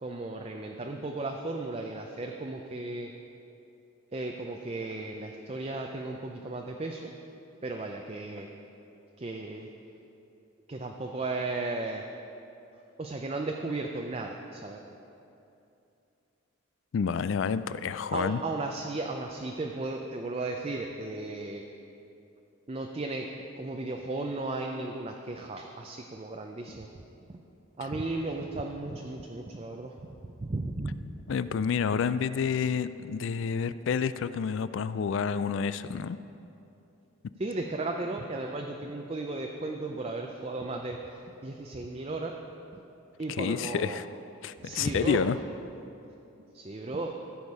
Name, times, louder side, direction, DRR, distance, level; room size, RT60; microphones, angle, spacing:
voice 1, 0.0-3.1 4.1-7.1 7.6-8.5 9.2-9.7 10.7-12.0 13.0-14.8 18.1-21.6 22.7-23.3 23.6-26.9 27.3-27.4 27.8-29.9 30.4-31.0 37.4-41.0 41.4-42.3 42.7-42.8 43.2-44.0 44.6-45.2 46.5-47.2, right 2 dB, 30° right, 2 dB, 0.5 m, -35 dB
voice 2, 16.9-18.4 31.3-36.2 43.4-44.1 44.4-45.4, left 6 dB, 60° left, 14 dB, 0.3 m, -29 dB
14.5 x 7.1 x 4.8 m, 2.8 s
head